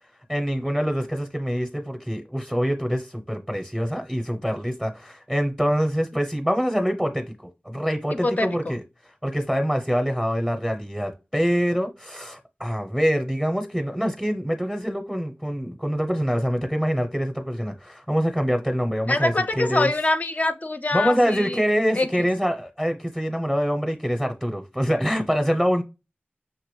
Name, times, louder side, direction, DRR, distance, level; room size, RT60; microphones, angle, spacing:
voice 1, 0.3-7.3 7.6-8.8 9.2-19.9 20.9-25.8, equal, 5° right, 0.6 m, -25 dB
voice 2, 19.1-21.6 22.0-22.1, left 2 dB, 40° left, 0.4 m, -24 dB
5.8 x 2.9 x 3.1 m
wide cardioid pair, 60°, 4 cm